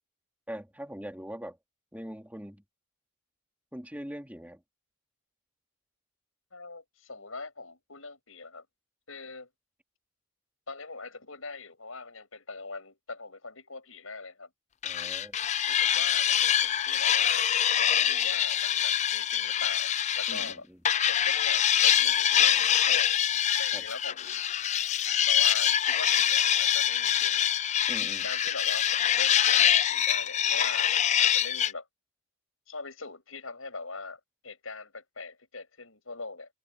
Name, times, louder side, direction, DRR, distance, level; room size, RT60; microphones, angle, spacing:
voice 1, 0.5-1.6 1.9-2.6 3.7-4.6 14.8-15.4 20.3-20.8 23.7-23.8 27.9-28.3, equal, 5° right, 4.0 m, -41 dB
voice 2, 6.5-8.7 9.1-9.5 10.7-14.5 15.7-17.5 17.8-20.7 21.1-23.2 23.6-24.4 25.2-27.5 28.2-31.9 32.7-36.5, left 3 dB, 75° left, 7.5 m, -42 dB
sound 1, 14.8-20.5 20.9-31.7, left 10 dB, 35° left, 0.4 m, -25 dB
open air
head